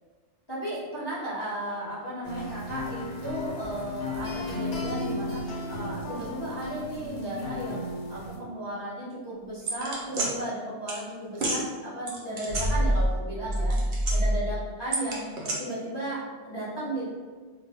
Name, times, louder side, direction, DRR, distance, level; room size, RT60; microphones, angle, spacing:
voice 1, 0.5-15.3 15.6-17.1, right 1 dB, 30° left, -10 dB, 0.5 m, -35 dB
sound 1, 2.2-8.4, left 2 dB, 70° left, 0.8 m, -34 dB
sound 2, 9.7-10.3 10.9-11.0 11.3-11.6 12.1-13.2 13.4-14.4 14.9-15.5, right 1 dB, 65° right, 0.8 m, -26 dB
2.1 x 2.0 x 3.4 m, 1.5 s
omnidirectional pair, 1.1 m